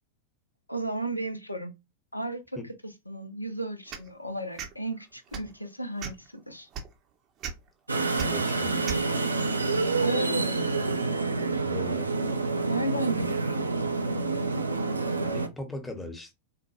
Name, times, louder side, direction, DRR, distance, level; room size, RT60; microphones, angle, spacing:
voice 1, 0.7-1.7 2.1-2.6 3.1-6.7 10.0-10.6 12.7-13.5, right 1 dB, 85° left, 0.5 m, -33 dB
sound 1, 3.9-4.1 4.6-4.7 5.3-5.5 6.0-6.3 6.7-6.9 7.4-7.5 8.2-8.3 8.9-9.0, right 7 dB, 35° right, 0.6 m, -35 dB
sound 2, 7.9-15.5, right 3 dB, 80° right, 0.4 m, -28 dB
voice 2, 8.3-8.7 11.6-12.1 13.2-13.3 15.2-16.3, left 1 dB, 10° left, 0.9 m, -39 dB
3.9 x 2.2 x 3.0 m
figure-of-eight pair, 90°, 0 cm